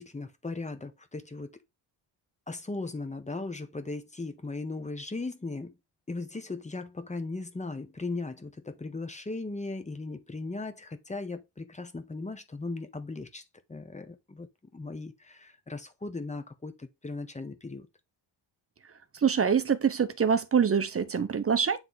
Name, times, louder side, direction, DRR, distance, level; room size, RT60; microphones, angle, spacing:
voice 1, 0.0-1.5 2.5-5.8 6.1-14.5 14.7-17.9, left 3 dB, 15° left, 0.9 m, -37 dB
voice 2, 19.2-21.8, right 7 dB, 30° right, 0.7 m, -25 dB
9.3 x 3.3 x 4.0 m
cardioid pair, 135°, 46 cm